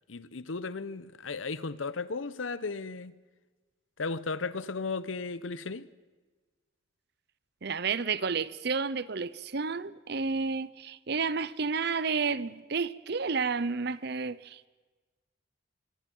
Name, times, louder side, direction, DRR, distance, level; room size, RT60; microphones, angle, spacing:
voice 1, 0.1-3.2 4.0-5.9, left 4 dB, 90° left, 0.9 m, -35 dB
voice 2, 7.6-14.7, right 5 dB, 55° right, 0.8 m, -31 dB
25.5 x 24.0 x 5.5 m
head